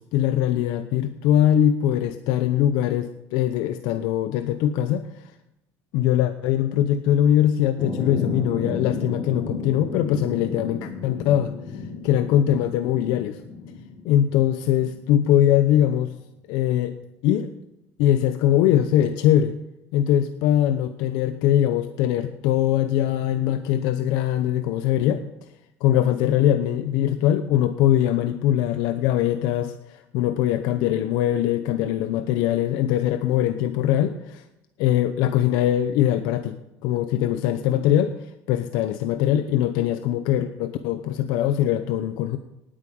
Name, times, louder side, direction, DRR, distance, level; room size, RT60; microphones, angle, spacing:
voice 1, 0.0-5.3 5.9-13.4 14.0-16.1 16.5-17.0 17.2-17.5 18.0-19.5 19.9-25.2 25.8-34.4 34.8-38.1 38.5-42.4, left 11 dB, 80° left, 9 dB, 0.9 m, -22 dB
sound 1, 7.8-15.6, left 4 dB, 30° left, 3.5 m, -33 dB
18.5 x 9.0 x 5.3 m, 0.89 s
cardioid pair, 110°, 7 cm